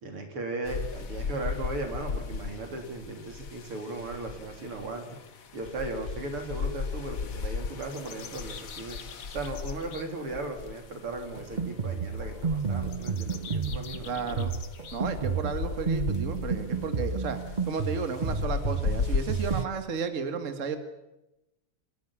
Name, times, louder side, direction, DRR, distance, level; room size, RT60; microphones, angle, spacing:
voice 1, 0.0-5.2 5.5-14.4, right 2 dB, 85° right, 4 dB, 4.2 m, -37 dB
sound 1, 0.6-19.7, left 5 dB, 45° left, 1.5 m, -37 dB
sound 2, 7.8-10.0 12.9-15.0, left 7 dB, 70° left, 2.3 m, -46 dB
Drum kit, 11.4-19.7, right 5 dB, 60° right, 0.4 m, -31 dB
voice 2, 14.0-14.5 14.9-20.8, right 5 dB, 35° right, 8 dB, 2.1 m, -33 dB
26.5 x 14.0 x 10.0 m, 0.96 s
omnidirectional pair, 2.4 m